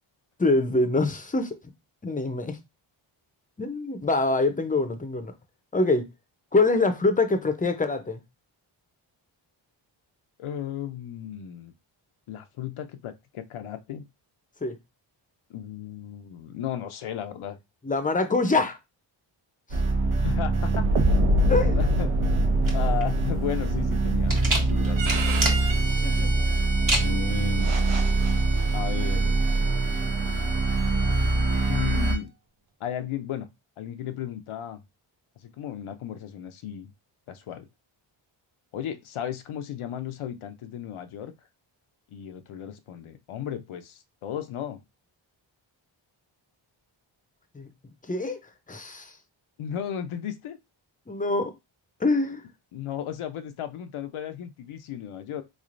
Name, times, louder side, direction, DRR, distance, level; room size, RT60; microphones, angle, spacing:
voice 1, 0.4-1.5 2.0-2.6 3.6-5.3 5.7-6.1 6.5-8.2 14.6-14.8 17.8-18.8 19.7-19.8 21.5-21.8 25.8-26.5 47.5-47.7 48.1-48.4 48.7-49.1 51.1-51.5 52.0-52.4, left 3 dB, 15° left, 0.6 m, -25 dB
voice 2, 10.4-11.7 12.3-14.0 15.5-17.6 20.2-20.9 21.7-22.1 22.7-25.5 27.0-27.8 28.7-29.3 31.7-32.3 32.8-33.5 33.8-34.8 35.4-36.9 37.3-37.7 38.7-41.3 42.1-44.8 49.6-50.6 52.7-55.4, left 10 dB, 75° left, 0.6 m, -35 dB
sound 1, 19.7-32.2, right 2 dB, 80° right, 1.0 m, -23 dB
sound 2, 22.6-30.2, right 2 dB, 40° right, 1.1 m, -31 dB
Bowed string instrument, 25.0-32.2, right 4 dB, 60° right, 0.7 m, -35 dB
3.7 x 3.2 x 2.5 m
cardioid pair, 85°, 50 cm